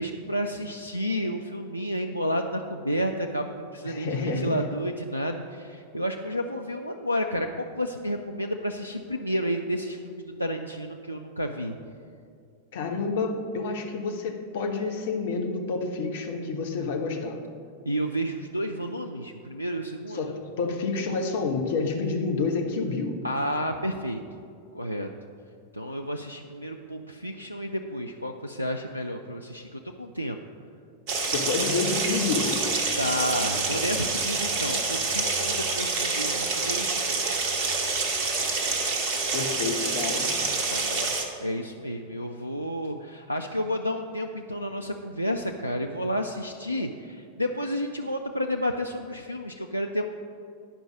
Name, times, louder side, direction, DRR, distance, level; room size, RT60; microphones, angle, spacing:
voice 1, 0.0-11.8 17.9-20.2 23.2-24.2 24.7-25.1 25.7-30.4 33.0-37.2 40.5-41.1 41.4-50.1, equal, 90° right, 4 dB, 0.4 m, -31 dB
voice 2, 3.8-4.7 12.7-17.4 20.1-23.2 31.3-32.6 39.3-40.4, left 4 dB, 55° left, 3 dB, 1.0 m, -29 dB
sound 1, 31.1-41.3, right 3 dB, 45° right, 1.2 m, -27 dB
10.0 x 5.3 x 6.1 m, 2.3 s
figure-of-eight pair, 90°, 0 cm